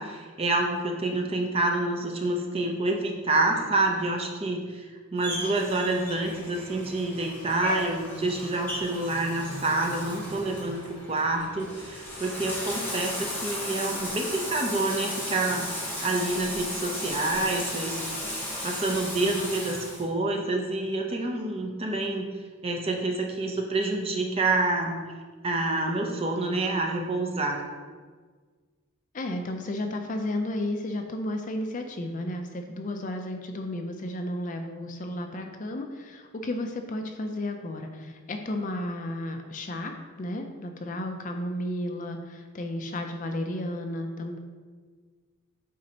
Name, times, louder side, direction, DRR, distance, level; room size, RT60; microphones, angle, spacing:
voice 1, 0.0-4.9 5.1-18.0 18.3-22.3 22.6-24.9 25.4-27.6, right 2 dB, 25° right, 2 dB, 0.6 m, -28 dB
Bathtub (filling or washing), 5.2-20.0, left 1 dB, 10° left, 0.9 m, -35 dB
voice 2, 29.1-44.4, left 1 dB, 35° left, 5 dB, 0.4 m, -33 dB
8.4 x 4.0 x 2.8 m, 1.5 s
head